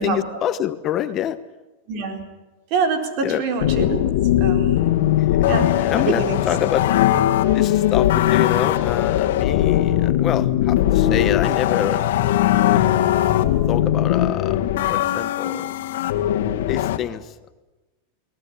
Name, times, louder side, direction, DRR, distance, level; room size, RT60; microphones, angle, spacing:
voice 1, 0.0-1.4 3.2-3.4 5.3-6.9 7.5-12.0 12.7-13.0 13.7-14.6 14.9-15.7 16.7-17.5, left 10 dB, 35° left, 12 dB, 1.0 m, -26 dB
voice 2, 1.9-2.2 2.7-4.0 4.4-4.9 5.5-6.4, right 5 dB, 50° right, 5 dB, 4.3 m, -25 dB
sound 1, 3.6-17.0, left 12 dB, 75° left, 1.8 m, -19 dB
21.5 x 18.5 x 10.0 m, 1.1 s
supercardioid pair, 125°, 0 cm